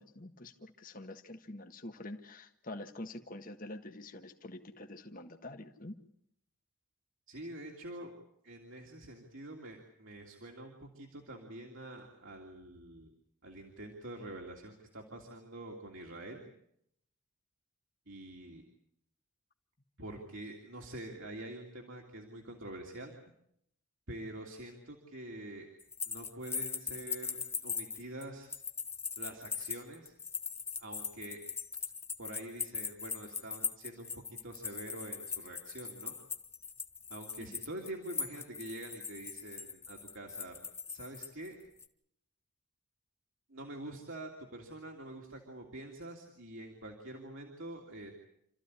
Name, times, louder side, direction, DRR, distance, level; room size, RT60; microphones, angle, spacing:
voice 1, 0.0-6.0 37.4-37.5, left 1 dB, 40° left, 6 dB, 1.6 m, -46 dB
voice 2, 7.3-8.1 8.4-13.1 13.4-16.4 18.1-18.6 20.0-23.2 24.1-25.7 26.1-28.5 29.2-30.1 30.8-31.4 32.2-36.2 37.1-40.5 40.9-41.6 43.5-48.1, right 1 dB, 60° right, 1 dB, 3.0 m, -46 dB
sound 1, 25.8-41.5 41.8-41.9, left 5 dB, 10° left, 1.0 m, -40 dB
28.0 x 14.5 x 9.8 m, 0.75 s
head